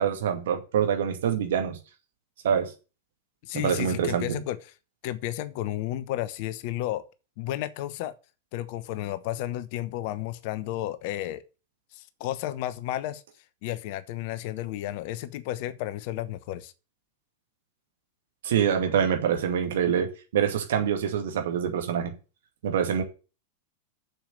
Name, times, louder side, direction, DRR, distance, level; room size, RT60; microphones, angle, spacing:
voice 1, 0.0-1.8 2.4-2.7 3.5-4.4 18.4-22.2 22.6-23.0, right 8 dB, 60° right, 2.2 m, -25 dB
voice 2, 3.4-4.6 5.0-7.0 7.4-8.1 8.5-11.4 11.9-13.2 13.6-16.7, left 14 dB, 50° left, 1.0 m, -32 dB
7.3 x 7.0 x 7.6 m
figure-of-eight pair, 90°, 0 cm